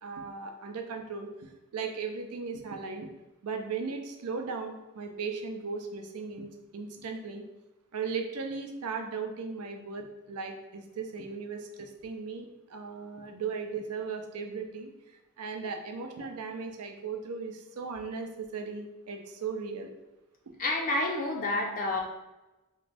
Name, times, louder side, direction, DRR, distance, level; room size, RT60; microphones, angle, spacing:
voice 1, 0.0-3.1 3.4-7.4 7.9-14.9 15.4-19.9, right 5 dB, 70° right, 4 dB, 0.5 m, -37 dB
voice 2, 20.6-22.0, left 2 dB, 40° left, 0 dB, 0.4 m, -29 dB
3.0 x 2.5 x 3.3 m, 1.0 s
head